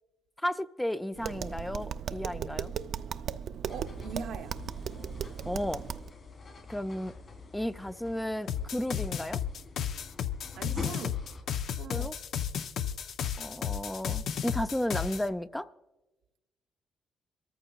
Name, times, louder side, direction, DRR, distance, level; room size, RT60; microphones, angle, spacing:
voice 1, 0.4-2.7 5.5-5.8 6.7-7.1 7.5-9.4 11.9-12.1 13.4-15.7, left 1 dB, 10° left, 0.4 m, -33 dB
Tap, 1.1-6.1, right 8 dB, 65° right, 0.4 m, -37 dB
sound 1, 3.7-11.4, left 4 dB, 45° left, 3.1 m, -45 dB
voice 2, 3.7-4.6 10.6-11.3 11.8-12.2, right 5 dB, 80° right, 0.8 m, -41 dB
sound 2, 8.5-15.3, left 9 dB, 70° left, 0.5 m, -33 dB
26.0 x 14.0 x 2.3 m
cardioid pair, 90°, 0 cm